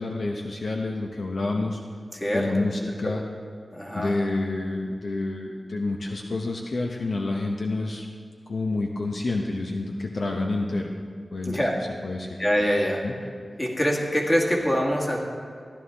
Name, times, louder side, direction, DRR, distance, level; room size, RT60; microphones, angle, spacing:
voice 1, 0.0-1.8 2.3-3.2 3.9-8.1 8.5-10.9 11.3-11.7 12.0-12.4 13.0-13.1, left 2 dB, 65° left, 1 dB, 0.8 m, -28 dB
voice 2, 2.1-3.2 3.7-4.1 11.5-11.8 12.4-13.0 13.6-15.2, equal, 25° left, -2 dB, 2.0 m, -25 dB
15.0 x 11.0 x 3.5 m, 2.2 s
wide cardioid pair, 90°, 0 cm